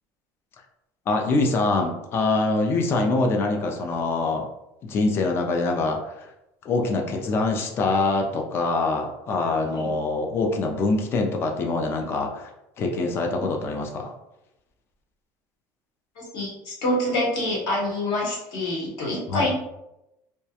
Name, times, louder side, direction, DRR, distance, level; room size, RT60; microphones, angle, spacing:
voice 1, 1.1-4.5 4.9-6.3 6.7-12.5 12.8-14.1 19.3-19.5, left 3 dB, 25° left, 2 dB, 0.3 m, -24 dB
voice 2, 9.7-10.0 13.4-13.5 16.2-19.6, left 1 dB, 55° left, -3 dB, 0.8 m, -27 dB
2.3 x 2.1 x 2.7 m, 0.88 s
cardioid pair, 175°, 9 cm